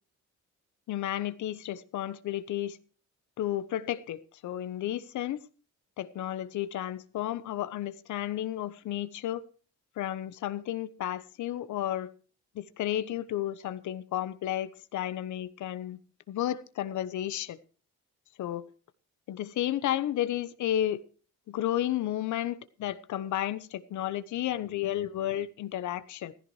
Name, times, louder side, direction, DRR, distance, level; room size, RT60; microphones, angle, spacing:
voice 1, 0.9-2.8 3.4-5.4 6.0-9.4 10.0-12.1 12.5-16.0 16.3-17.6 18.4-18.7 19.3-21.0 21.5-26.3, left 12 dB, 75° left, 1.1 m, -32 dB
15.5 x 14.5 x 3.2 m
cardioid pair, 90°, 30 cm